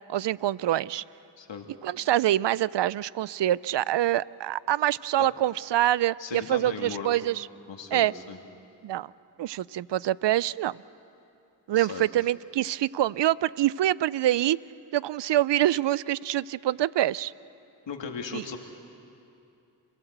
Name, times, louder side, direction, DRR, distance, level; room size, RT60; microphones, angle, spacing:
voice 1, 0.1-1.0 1.8-7.4 7.9-8.1 8.8-9.1 9.4-10.8 11.7-14.6 14.9-17.3 18.3-18.4, right 13 dB, 70° right, 21 dB, 0.6 m, -25 dB
voice 2, 1.4-1.7 5.2-5.3 6.2-7.1 7.7-8.4 11.7-12.1 17.9-18.6, left 6 dB, 75° left, 4 dB, 2.3 m, -37 dB
28.5 x 16.5 x 8.1 m, 2.7 s
cardioid pair, 40°, 44 cm